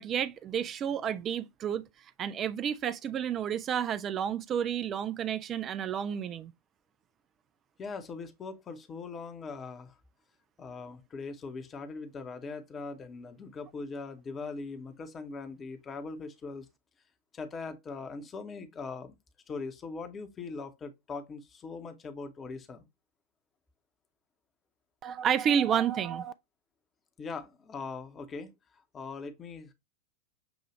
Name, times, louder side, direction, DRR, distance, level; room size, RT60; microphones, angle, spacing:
voice 1, 0.0-1.9 2.2-6.5 25.0-26.3, right 8 dB, 30° right, 0.3 m, -30 dB
voice 2, 7.8-10.0 10.6-16.7 17.3-19.2 19.5-22.9 27.2-29.7, left 4 dB, 20° left, 0.9 m, -41 dB
7.0 x 2.4 x 2.9 m
figure-of-eight pair, 90°, 0 cm